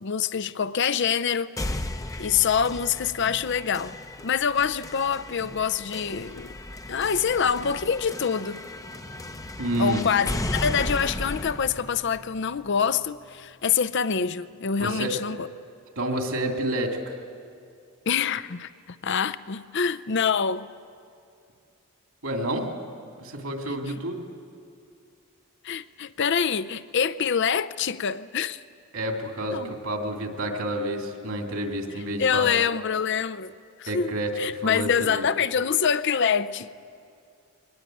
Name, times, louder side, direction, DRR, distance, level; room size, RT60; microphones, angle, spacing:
voice 1, 0.0-1.5 2.2-4.0 4.2-6.6 6.9-8.6 9.8-15.5 18.1-18.7 19.0-20.7 25.6-28.6 29.5-29.7 32.2-33.5 33.8-36.7, left 7 dB, 50° left, 0.6 m, -25 dB
sound 1, 1.6-13.5, left 1 dB, 15° left, 0.7 m, -35 dB
voice 2, 9.6-10.0 14.8-15.1 16.0-17.1 22.2-22.7 23.2-24.2 28.9-32.6 33.9-35.2, right 1 dB, 70° right, 2.8 m, -29 dB
22.5 x 19.5 x 9.1 m
head